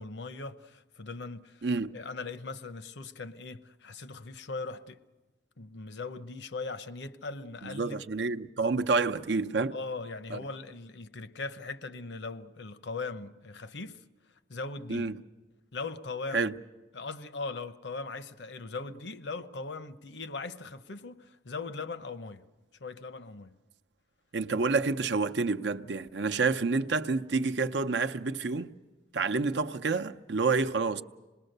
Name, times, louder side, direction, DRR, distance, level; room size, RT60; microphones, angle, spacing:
voice 1, 0.0-1.7 1.9-5.0 5.6-8.0 9.7-14.0 14.5-15.1 15.7-16.5 16.9-22.4 22.8-23.5, left 3 dB, 80° left, 0.9 m, -39 dB
voice 2, 1.6-1.9 7.6-9.7 10.3-10.4 14.9-15.2 16.3-16.5 24.3-28.7 29.1-31.0, right 4 dB, 80° right, 0.7 m, -28 dB
26.5 x 20.5 x 6.7 m
head